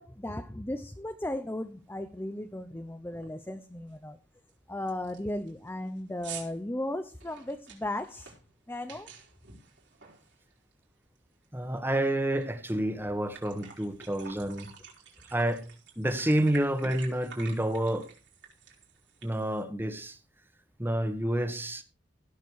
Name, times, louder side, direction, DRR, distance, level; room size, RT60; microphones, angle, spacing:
voice 1, 0.0-4.2 4.7-8.3 8.7-9.1, left 1 dB, 10° left, 0.7 m, -36 dB
sound 1, 1.5-1.6 2.0-2.3 2.6-2.7 3.1-3.5 3.9-4.0 4.5-4.6 4.9-10.8 11.2-12.5 12.8-12.9 13.2-19.6, right 6 dB, 70° right, 4.6 m, -49 dB
voice 2, 11.5-14.7 15.3-15.6 16.0-18.1 19.2-20.2 20.8-21.8, right 1 dB, 10° right, 1.5 m, -29 dB
16.5 x 6.6 x 4.8 m
head